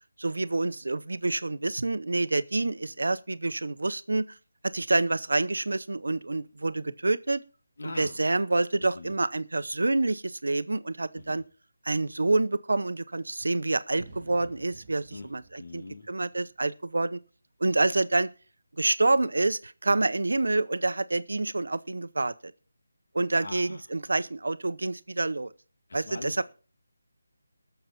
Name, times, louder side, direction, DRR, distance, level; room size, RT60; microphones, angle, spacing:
voice 1, 0.2-4.2 4.7-7.4 8.0-11.4 11.8-17.2 17.6-18.3 18.8-22.5 23.1-25.5 25.9-26.4, right 2 dB, 90° right, 0.7 m, -27 dB
voice 2, 7.8-8.2 8.8-9.1 11.1-11.4 15.1-15.3 15.6-16.1 23.4-23.8 25.9-26.4, left 2 dB, 55° left, 1.8 m, -41 dB
sound 1, 13.9-17.1, right 3 dB, 20° right, 1.9 m, -51 dB
20.0 x 6.8 x 4.3 m
figure-of-eight pair, 175°, 0 cm